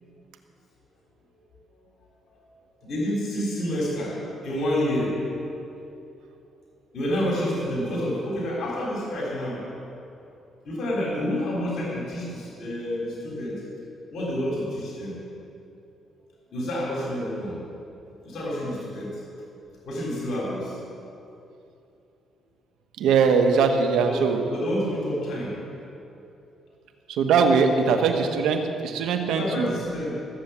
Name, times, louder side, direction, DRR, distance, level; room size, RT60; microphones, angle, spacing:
voice 1, 2.8-5.3 6.9-9.7 10.6-13.6 14.1-15.2 16.5-17.6 18.2-19.2 19.8-20.8 24.0-25.6 29.3-30.1, equal, 65° left, -4 dB, 3.4 m, -28 dB
voice 2, 23.0-24.4 27.1-29.7, right 5 dB, 85° right, 5 dB, 1.1 m, -21 dB
14.0 x 7.9 x 7.2 m, 2.8 s
cardioid pair, 90°, 0 cm